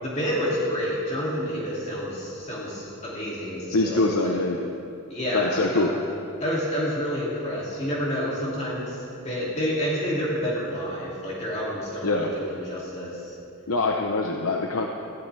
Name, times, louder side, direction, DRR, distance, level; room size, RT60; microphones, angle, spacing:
voice 1, 0.0-4.4 5.1-6.0 6.4-13.3, equal, 30° left, -6 dB, 2.6 m, -29 dB
voice 2, 3.7-4.7 5.3-5.9 12.0-12.3 13.7-14.9, left 2 dB, 75° left, 1 dB, 0.9 m, -24 dB
19.5 x 15.5 x 3.4 m, 2.6 s
head